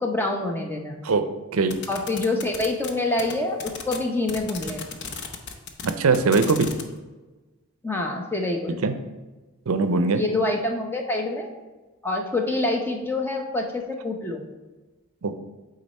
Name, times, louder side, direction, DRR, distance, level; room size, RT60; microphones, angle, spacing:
voice 1, 0.0-1.0 1.9-5.0 7.8-8.9 10.1-11.5 12.0-14.4, left 2 dB, 10° left, 1 dB, 0.7 m, -26 dB
sound 1, 1.7-2.9 3.2-3.3 3.6-4.0 4.3-6.8, left 6 dB, 50° left, 0.7 m, -34 dB
voice 2, 5.8-6.7 8.8-8.9 9.7-10.2 15.2-15.4, right 4 dB, 70° right, 9 dB, 0.5 m, -21 dB
8.6 x 3.9 x 4.2 m, 1.2 s
head